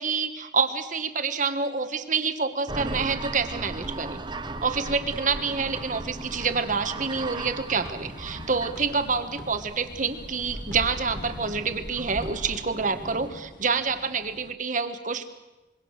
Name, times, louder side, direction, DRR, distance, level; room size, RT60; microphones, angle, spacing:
voice 1, 0.0-4.2 4.6-15.3, right 5 dB, 45° right, 9 dB, 1.5 m, -27 dB
sound 1, 2.7-13.3, right 2 dB, 25° right, 1.0 m, -38 dB
sound 2, 3.3-8.4 8.8-12.6, equal, 15° left, 2.8 m, -43 dB
sound 3, 5.4-14.5, left 1 dB, 45° left, 1.3 m, -45 dB
26.0 x 22.5 x 6.6 m, 1.1 s
head